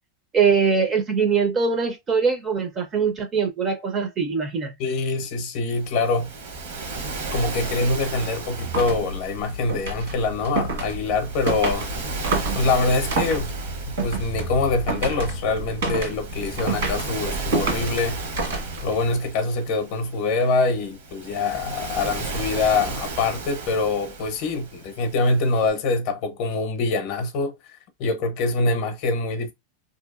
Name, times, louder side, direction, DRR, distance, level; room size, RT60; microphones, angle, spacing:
voice 1, 0.3-4.7, right 5 dB, 20° right, 0.4 m, -22 dB
voice 2, 4.8-6.3 7.3-11.9 12.5-13.6 13.9-18.2 18.8-27.5 28.0-29.5, left 3 dB, 40° left, 0.6 m, -24 dB
Waves surf, 5.7-25.7, right 3 dB, 60° right, 0.8 m, -35 dB
sound 1, 8.5-19.1, right 3 dB, 80° right, 1.6 m, -29 dB
2.7 x 2.4 x 2.4 m
supercardioid pair, 175°, 0 cm